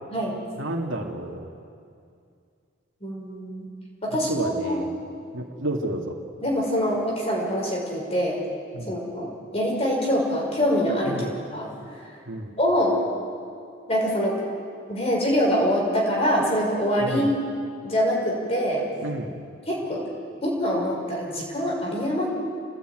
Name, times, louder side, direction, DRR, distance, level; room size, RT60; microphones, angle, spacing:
voice 1, 0.6-1.5 4.3-4.9 5.3-6.2 8.7-8.9 11.0-11.3 12.3-12.5 17.0-17.3 19.0-19.4, right 1 dB, 75° right, 0 dB, 2.4 m, -30 dB
voice 2, 3.0-3.7 4.0-4.8 6.4-8.4 8.9-11.7 12.0-12.1 12.6-13.0 13.9-14.4 14.9-17.3 17.8-18.9 19.7-20.0 20.4-22.3, equal, 30° left, -2 dB, 5.8 m, -24 dB
28.5 x 18.5 x 9.3 m, 2.4 s
head